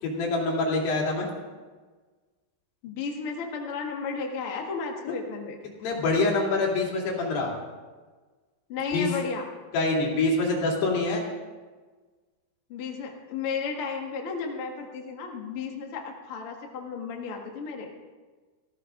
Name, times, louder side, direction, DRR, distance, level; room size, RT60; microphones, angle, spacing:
voice 1, 0.0-1.3 5.8-7.5 8.9-9.1 9.7-11.2, left 3 dB, 75° left, -2 dB, 4.8 m, -25 dB
voice 2, 2.8-5.6 8.7-9.5 12.7-17.9, left 5 dB, 55° left, 1 dB, 1.6 m, -33 dB
18.5 x 15.0 x 3.8 m, 1.4 s
omnidirectional pair, 4.8 m